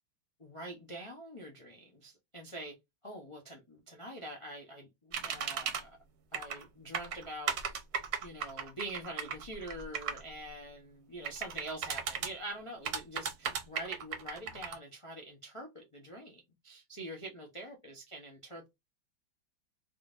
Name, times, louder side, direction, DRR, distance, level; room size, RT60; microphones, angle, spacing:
voice 1, 0.4-2.8 3.0-6.0 6.3-7.6 8.2-18.7, right 1 dB, 50° left, 0.3 m, -45 dB
sound 1, 5.1-5.8 6.3-6.6 6.9-10.2 11.2-12.3 12.9-14.8, right 7 dB, 60° right, 1.1 m, -35 dB
3.8 x 3.2 x 2.4 m
omnidirectional pair, 2.2 m